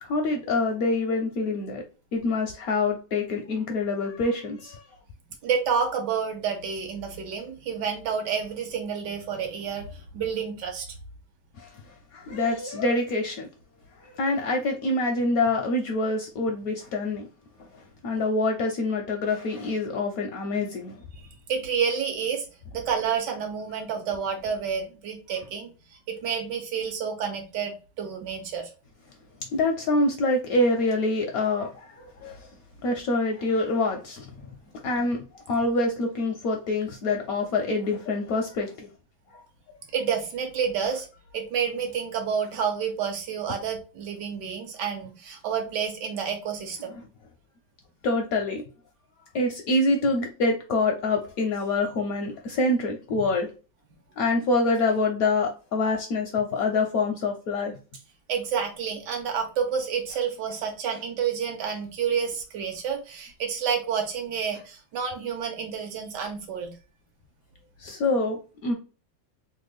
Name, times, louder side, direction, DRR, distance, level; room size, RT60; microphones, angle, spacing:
voice 1, 0.0-1.8 2.1-4.8 11.6-11.7 12.1-13.5 14.0-17.3 18.0-20.9 29.5-32.5 32.8-34.3 34.8-38.9 48.0-48.6 49.3-53.5 54.2-57.8 67.8-68.7, left 2 dB, 75° left, 3 dB, 0.8 m, -26 dB
voice 2, 5.4-10.9 21.5-22.5 22.7-28.7 39.9-41.1 41.3-46.9 58.3-66.7, right 7 dB, 75° right, 4 dB, 1.4 m, -29 dB
3.2 x 2.2 x 3.2 m, 0.34 s
omnidirectional pair, 1.9 m